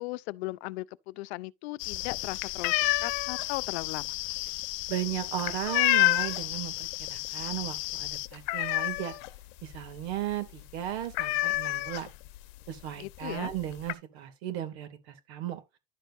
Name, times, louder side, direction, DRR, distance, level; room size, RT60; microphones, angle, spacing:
voice 1, 0.0-4.2 13.0-13.5, left 21 dB, 85° left, 0.7 m, -37 dB
sound 1, 1.8-6.6 6.9-7.3 7.5-7.6 8.0-9.4 9.7-9.8 10.1-10.3 10.6-10.7 11.1-12.4 13.1-13.2 13.5-13.9, left 21 dB, 60° left, 0.9 m, -28 dB
sound 2, 1.8-8.3, left 22 dB, 40° left, 0.4 m, -36 dB
voice 2, 4.9-9.2 9.6-12.1 12.7-15.6, right 12 dB, 85° right, 2.4 m, -35 dB
11.0 x 7.2 x 2.6 m
cardioid pair, 155°, 31 cm